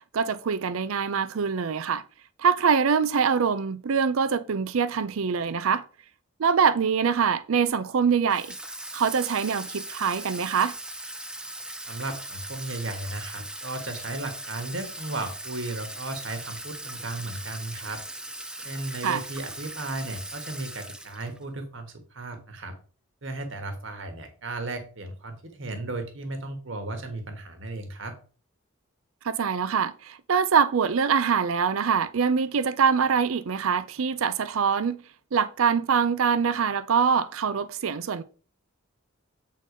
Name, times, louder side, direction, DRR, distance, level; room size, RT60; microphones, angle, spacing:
voice 1, 0.1-2.0 2.4-5.8 6.4-8.5 8.9-10.8 19.0-19.2 29.2-35.0 35.3-38.2, right 6 dB, 80° right, 0.5 m, -24 dB
Water tap faucet / Sink (filling or washing), 8.3-21.4, right 1 dB, 5° right, 0.5 m, -39 dB
voice 2, 11.9-18.0 18.6-22.7 23.2-28.1, right 2 dB, 60° right, 1.4 m, -35 dB
8.3 x 3.9 x 5.1 m
head